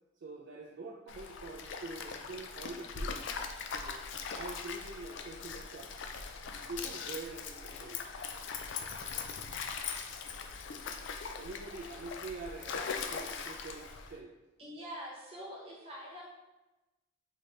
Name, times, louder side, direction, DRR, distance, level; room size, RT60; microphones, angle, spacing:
voice 1, 0.2-3.2 3.7-4.1 4.3-6.0 6.7-8.0 11.4-14.3, right 2 dB, 55° right, -1 dB, 0.3 m, -45 dB
Stream, 1.1-14.2, left 5 dB, 60° left, 0.3 m, -41 dB
voice 2, 14.6-16.3, equal, 25° right, -4 dB, 0.9 m, -45 dB
3.8 x 2.8 x 3.3 m, 1.1 s
head